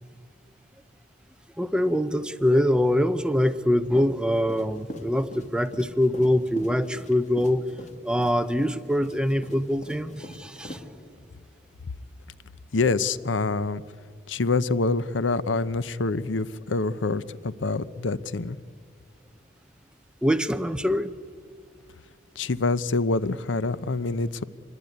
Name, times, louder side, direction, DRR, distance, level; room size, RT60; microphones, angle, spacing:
voice 1, 1.6-7.6 8.0-10.8 20.2-21.2, left 1 dB, 5° right, 10 dB, 0.7 m, -24 dB
sound 1, 4.3-10.8, equal, 40° left, 2.6 m, -42 dB
voice 2, 12.7-13.8 14.3-18.6 22.4-24.4, left 3 dB, 85° left, 16 dB, 0.7 m, -26 dB
25.5 x 21.0 x 9.6 m, 2.1 s
head